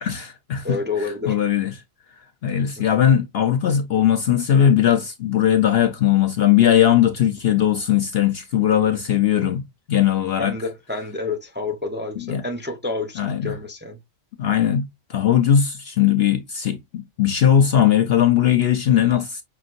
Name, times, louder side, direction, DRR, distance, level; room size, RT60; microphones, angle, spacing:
voice 1, 0.0-0.8 1.3-1.7 2.4-9.6 9.9-10.6 12.3-12.4 13.2-13.5 14.4-19.4, left 10 dB, 60° left, 0.7 m, -19 dB
voice 2, 0.6-1.4 2.8-2.9 10.4-14.0, left 3 dB, 10° right, 0.6 m, -29 dB
5.8 x 2.6 x 2.5 m
omnidirectional pair, 1.4 m